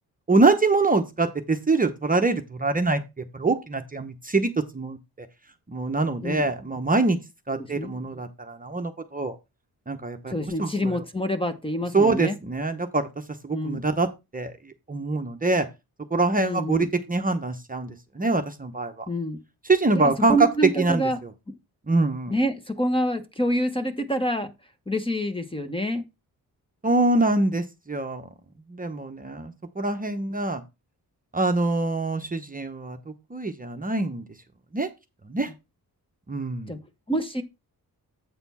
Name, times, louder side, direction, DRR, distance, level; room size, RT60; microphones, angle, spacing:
voice 1, 0.3-5.3 5.7-7.2 7.5-9.4 9.9-11.0 11.9-13.1 13.4-14.1 14.3-14.5 14.9-15.7 16.1-18.9 19.6-20.5 20.8-21.0 21.9-22.3 26.8-28.3 28.7-30.6 31.3-33.0 33.3-34.3 34.7-34.9 35.3-35.5 36.3-36.7, right 3 dB, 20° right, 0.8 m, -24 dB
voice 2, 7.6-7.9 10.3-12.4 13.5-13.8 16.4-16.9 19.1-19.4 19.9-21.2 21.5-21.6 22.3-24.5 24.9-26.1 36.7-36.8 37.1-37.4, equal, 15° left, 0.9 m, -27 dB
8.2 x 4.2 x 5.5 m
wide cardioid pair, 110°, 37 cm